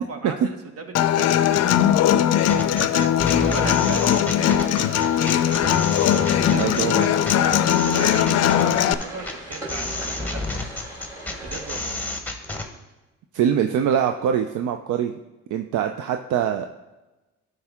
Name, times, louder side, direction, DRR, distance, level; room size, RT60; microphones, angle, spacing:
voice 1, 0.0-10.7 11.4-12.0, right 3 dB, 50° right, 5 dB, 1.3 m, -37 dB
Human voice / Acoustic guitar, 0.9-8.9, left 10 dB, 60° left, 0.5 m, -20 dB
sound 1, 2.5-12.7, left 2 dB, 5° left, 1.1 m, -30 dB
sound 2, 4.3-11.8, right 1 dB, 10° right, 2.6 m, -39 dB
voice 2, 6.5-7.0 13.3-15.1 15.5-16.7, right 9 dB, 75° right, 7 dB, 0.5 m, -23 dB
12.0 x 4.8 x 3.6 m, 1.1 s
cardioid pair, 90°, 30 cm